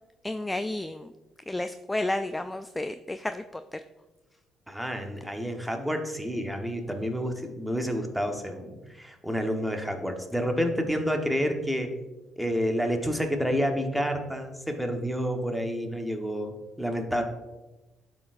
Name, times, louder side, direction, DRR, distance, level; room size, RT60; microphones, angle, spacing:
voice 1, 0.2-1.1 1.5-3.8, left 1 dB, 15° left, 10 dB, 0.3 m, -31 dB
voice 2, 4.7-11.9 12.4-17.2, equal, ahead, 4 dB, 1.3 m, -29 dB
12.0 x 4.6 x 2.6 m, 1.1 s
hypercardioid pair, 50°, 0 cm